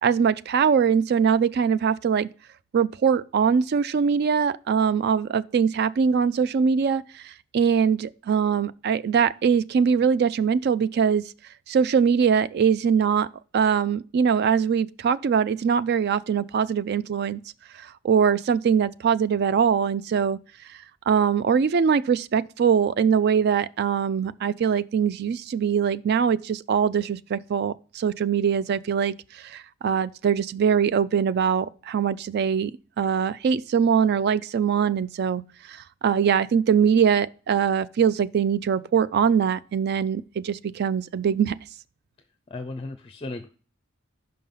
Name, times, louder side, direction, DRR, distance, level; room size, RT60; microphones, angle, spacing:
voice 1, 0.0-2.3 2.7-11.2 11.7-13.3 13.5-17.4 17.8-20.4 21.1-32.7 33.0-35.4 35.7-41.6, right 7 dB, 55° right, 0.3 m, -22 dB
voice 2, 42.5-43.5, left 2 dB, 25° left, 0.5 m, -35 dB
5.5 x 5.3 x 5.5 m
head